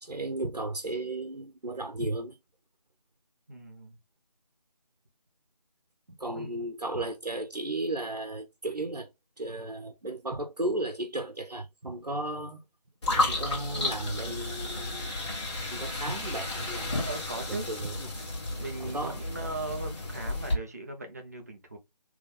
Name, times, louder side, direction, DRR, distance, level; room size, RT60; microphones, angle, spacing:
voice 1, 0.0-2.4 6.1-9.1 9.4-12.6 13.1-15.1 15.7-17.1 17.5-18.1 18.8-19.2, right 2 dB, 75° right, 1.0 m, -34 dB
voice 2, 3.5-4.0 6.3-6.5 17.0-17.7 18.6-21.8, right 2 dB, 25° right, 0.8 m, -38 dB
sound 1, 13.0-20.5, left 2 dB, 45° left, 2.1 m, -32 dB
4.0 x 3.3 x 3.4 m
figure-of-eight pair, 160°, 21 cm